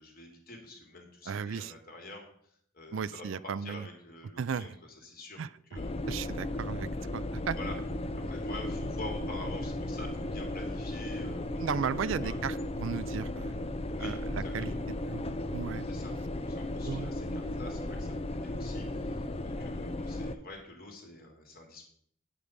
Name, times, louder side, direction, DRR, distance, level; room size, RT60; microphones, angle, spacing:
voice 1, 0.0-2.3 2.7-3.3 3.6-4.7 5.0-5.4 5.7-5.9 7.5-7.7 8.2-12.4 13.9-14.9 15.9-21.8, left 2 dB, 45° left, 1 dB, 2.8 m, -47 dB
voice 2, 1.3-1.7 2.9-3.9 4.4-4.7 5.4-5.5 6.1-7.6 11.6-13.6 14.0-15.2 15.5-15.9 16.9-17.1, right 6 dB, 70° right, 17 dB, 0.4 m, -35 dB
sound 1, 5.8-20.3, left 1 dB, 30° left, 0.5 m, -35 dB
9.5 x 8.4 x 5.2 m, 0.63 s
head